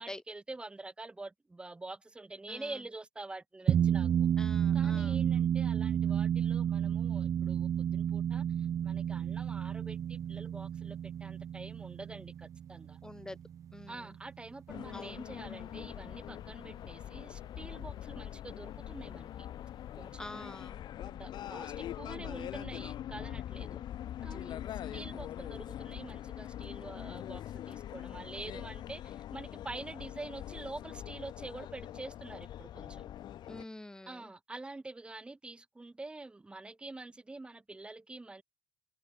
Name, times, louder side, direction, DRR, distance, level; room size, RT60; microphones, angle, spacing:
voice 1, 0.0-4.3 4.7-13.0 13.9-19.5 20.0-20.5 21.0-23.8 24.2-33.1 34.1-38.4, right 2 dB, 10° right, 6.8 m, -46 dB
sound 1, 3.7-14.4, right 9 dB, 30° right, 0.6 m, -31 dB
voice 2, 4.4-5.2 13.0-13.4 13.7-14.1 14.9-15.2 20.2-20.8 24.8-25.1 33.5-34.3, left 2 dB, 5° left, 4.6 m, -46 dB
sound 2, 14.7-33.6, left 11 dB, 45° left, 7.2 m, -43 dB
cardioid pair, 150°, 10 cm